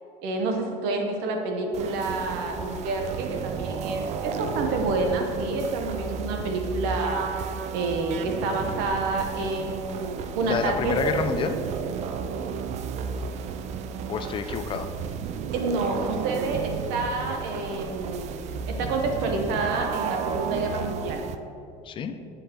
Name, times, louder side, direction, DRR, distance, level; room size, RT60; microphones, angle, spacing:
voice 1, 0.2-11.2 15.5-18.3 18.7-21.2, right 3 dB, 70° right, 3 dB, 1.0 m, -28 dB
sound 1, 1.7-21.4, right 6 dB, 40° right, 0.4 m, -33 dB
voice 2, 10.4-11.6 14.1-14.9 21.8-22.2, left 6 dB, 30° left, 8 dB, 0.4 m, -28 dB
8.0 x 5.3 x 3.0 m, 2.6 s
cardioid pair, 130°, 17 cm